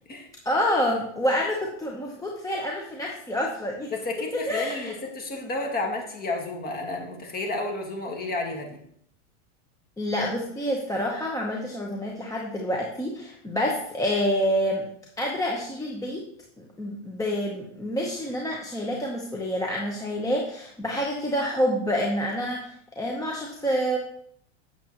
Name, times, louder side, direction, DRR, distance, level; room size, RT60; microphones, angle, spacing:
voice 1, 0.4-3.9 4.3-4.9 10.0-14.9 15.2-16.2 16.6-24.0, equal, 10° left, -1 dB, 0.9 m, -28 dB
voice 2, 3.9-8.8, left 2 dB, 25° left, 1 dB, 1.7 m, -31 dB
8.5 x 6.8 x 3.0 m, 0.68 s
supercardioid pair, 125°, 36 cm